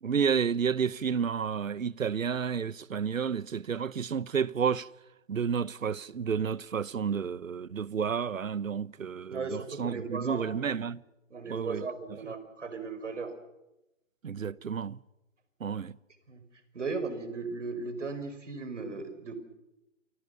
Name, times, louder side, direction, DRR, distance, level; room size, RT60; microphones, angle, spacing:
voice 1, 0.0-4.9 5.3-11.0 11.5-11.8 14.2-15.0 15.6-16.0, right 6 dB, 80° right, 1.0 m, -31 dB
voice 2, 9.3-10.8 11.3-13.3 16.3-16.4 16.7-19.4, right 4 dB, 65° right, 5.3 m, -36 dB
28.5 x 20.0 x 7.0 m
hypercardioid pair, 170°, 39 cm